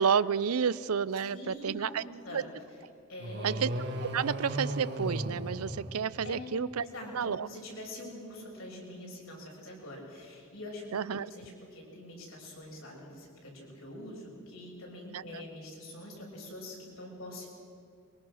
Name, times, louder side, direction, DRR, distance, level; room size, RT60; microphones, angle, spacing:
voice 1, 0.0-2.0 2.3-2.4 3.4-3.7 4.0-6.8 7.1-7.5 10.9-11.3 15.1-15.4, right 6 dB, 90° right, 18 dB, 0.5 m, -30 dB
voice 2, 1.3-2.4 3.1-3.6 6.2-6.5 6.8-17.5, left 1 dB, 75° left, -2 dB, 6.7 m, -45 dB
sound 1, 3.2-6.5, right 1 dB, 50° right, 1.6 m, -36 dB
23.0 x 23.0 x 6.4 m, 2.5 s
head